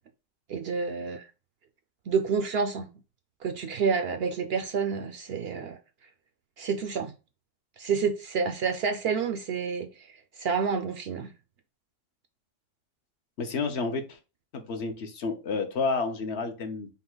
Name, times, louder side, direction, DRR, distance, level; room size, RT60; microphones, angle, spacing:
voice 1, 0.5-1.2 2.1-2.9 3.4-5.8 6.6-7.1 7.8-9.9 10.4-11.3, right 5 dB, 65° right, 0.7 m, -28 dB
voice 2, 13.4-14.2 14.5-16.9, left 4 dB, 60° left, 1.0 m, -30 dB
5.4 x 2.1 x 3.8 m
omnidirectional pair, 1.3 m